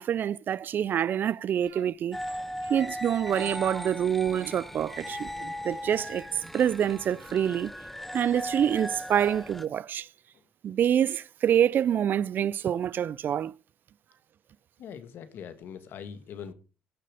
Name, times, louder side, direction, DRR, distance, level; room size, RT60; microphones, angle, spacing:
voice 1, 0.0-2.2 2.7-5.3 5.6-6.3 6.5-7.7 8.1-10.1 10.6-13.5, right 9 dB, 55° right, 0.5 m, -26 dB
sound 1, 1.6-8.5 8.8-8.9 9.4-9.6 9.9-10.0, right 7 dB, 75° right, 3.1 m, -49 dB
sound 2, 2.1-9.7, equal, 5° left, 0.7 m, -38 dB
voice 2, 14.8-16.5, left 7 dB, 65° left, 1.9 m, -42 dB
16.5 x 6.7 x 5.0 m
supercardioid pair, 60°, 4 cm